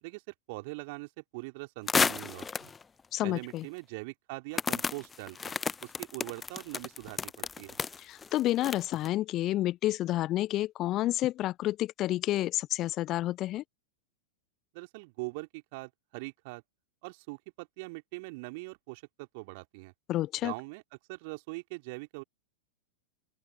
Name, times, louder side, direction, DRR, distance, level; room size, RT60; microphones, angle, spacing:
voice 1, 0.0-2.7 3.2-5.5 5.8-7.8 14.7-16.6 17.0-19.9 20.4-20.8 21.1-22.2, right 27 dB, 50° right, 3.6 m, -42 dB
sound 1, 1.9-2.8 3.5-3.6 4.5-9.1, left 5 dB, 15° left, 1.0 m, -32 dB
voice 2, 3.1-3.6 8.0-13.6 20.1-20.5, left 15 dB, 35° left, 0.7 m, -30 dB
open air
figure-of-eight pair, 90°, 0 cm